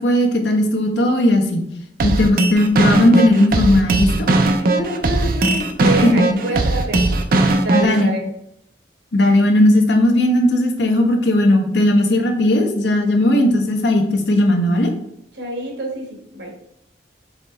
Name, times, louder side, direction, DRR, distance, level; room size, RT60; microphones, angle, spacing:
voice 1, 0.0-1.6 2.0-4.3 5.8-6.4 7.7-8.1 9.1-14.9, left 1 dB, 70° left, 4 dB, 0.9 m, -16 dB
sound 1, 2.0-8.0, right 2 dB, 50° right, 0.5 m, -18 dB
voice 2, 4.6-7.2 7.5-8.2 15.3-16.6, right 1 dB, 80° right, 1 dB, 1.6 m, -27 dB
5.0 x 3.1 x 3.3 m, 0.77 s
head